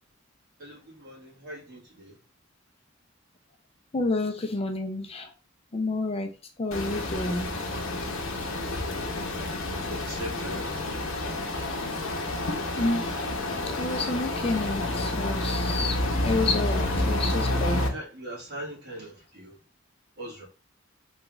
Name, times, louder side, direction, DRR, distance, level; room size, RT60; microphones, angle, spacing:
voice 1, 0.6-2.1 9.0-11.0 11.3-12.0 16.9-17.4 17.7-19.6 20.2-20.5, right 1 dB, 55° right, -3 dB, 1.6 m, -41 dB
voice 2, 3.9-5.3 5.7-6.3 6.6-7.5 11.7-11.9 12.8-13.1 13.7-16.0 16.2-17.9, left 2 dB, 30° left, 5 dB, 0.4 m, -29 dB
sound 1, 6.7-17.9, left 2 dB, 75° left, 0.7 m, -29 dB
3.3 x 2.3 x 3.1 m, 0.34 s
head